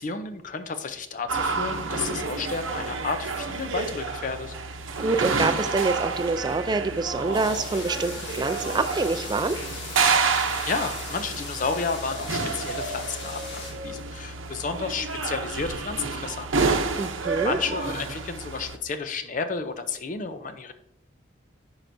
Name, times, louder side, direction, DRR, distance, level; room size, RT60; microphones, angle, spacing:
voice 1, 0.0-4.5 10.2-16.5 17.4-20.7, left 4 dB, 40° left, 9 dB, 0.5 m, -32 dB
sound 1, 1.3-18.8, right 4 dB, 85° right, 0.7 m, -29 dB
voice 2, 5.0-9.6 17.0-17.6, right 3 dB, 20° right, 10 dB, 0.3 m, -26 dB
sound 2, 7.3-13.7, left 2 dB, 65° left, 1.5 m, -39 dB
10.0 x 4.8 x 2.6 m, 0.75 s
head